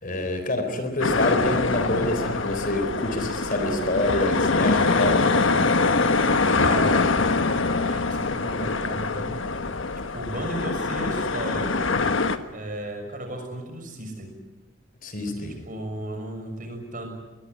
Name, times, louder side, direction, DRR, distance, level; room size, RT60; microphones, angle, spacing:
voice 1, 0.0-5.2 15.0-15.6, left 1 dB, 40° left, 7 dB, 4.1 m, -27 dB
sound 1, 1.0-12.4, left 3 dB, 65° left, 1.4 m, -23 dB
voice 2, 6.6-7.1 7.8-9.3 10.1-11.8 12.5-14.3 15.2-17.1, right 1 dB, 40° right, 4 dB, 6.5 m, -34 dB
23.0 x 21.5 x 9.6 m, 1.1 s
head